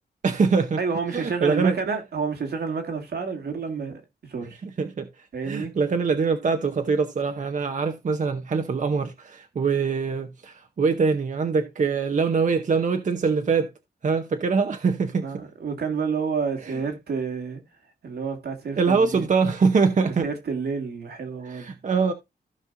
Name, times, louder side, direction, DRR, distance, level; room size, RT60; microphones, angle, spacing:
voice 1, 0.2-0.8 1.1-1.8 4.6-13.7 14.0-15.3 16.6-16.8 18.8-20.3 21.4-22.1, right 5 dB, 50° right, 0.8 m, -23 dB
voice 2, 0.8-4.6 5.3-5.7 15.2-17.6 18.0-19.3 20.2-21.7, right 5 dB, 80° right, 2.1 m, -29 dB
15.0 x 5.4 x 2.6 m
wide cardioid pair, 100°, 17 cm